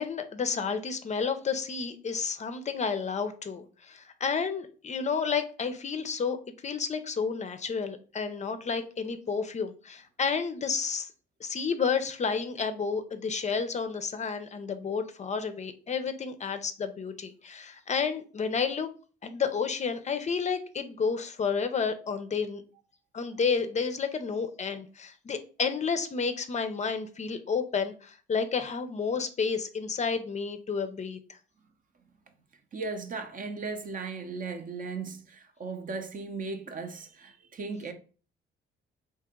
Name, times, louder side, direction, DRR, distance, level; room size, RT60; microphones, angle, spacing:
voice 1, 0.0-6.4 6.6-11.1 11.4-18.9 19.2-22.6 23.1-31.4, left 5 dB, 35° left, 0.5 m, -31 dB
voice 2, 32.7-37.9, right 4 dB, 45° right, 0.6 m, -37 dB
2.8 x 2.8 x 3.6 m
cardioid pair, 90°, 20 cm